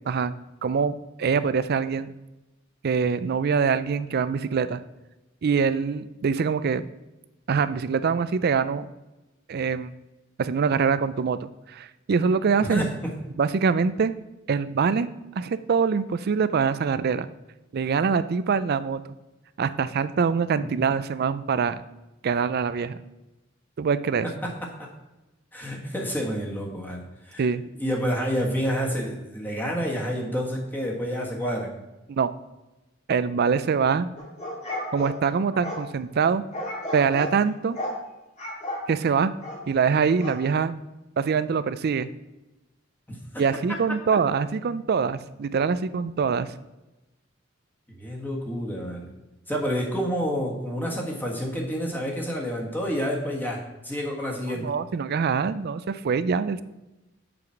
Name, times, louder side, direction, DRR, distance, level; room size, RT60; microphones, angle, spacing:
voice 1, 0.6-2.1 2.8-4.8 5.4-6.9 7.5-8.9 9.5-9.9 10.4-12.9 13.4-14.1 14.5-15.1 15.4-17.3 17.7-19.0 19.6-21.8 22.2-23.0 23.8-24.3 27.4-27.6 32.1-32.3 33.1-34.1 34.9-36.4 36.9-37.8 38.9-39.3 39.7-40.8 41.2-42.1 43.4-46.5 54.5-56.6, right 5 dB, 50° right, 14 dB, 0.4 m, -24 dB
voice 2, 12.6-13.1 20.6-20.7 24.2-24.5 24.8-24.9 25.5-27.5 27.8-31.7 43.1-43.2 48.0-49.1 49.5-54.7, equal, 10° left, -1 dB, 1.5 m, -29 dB
sound 1, 34.2-35.8 36.5-37.4 37.7-38.0 38.4-38.9 39.4-39.6 40.2-40.4, left 1 dB, 35° left, 2.0 m, -33 dB
7.2 x 4.9 x 5.8 m, 1.0 s
head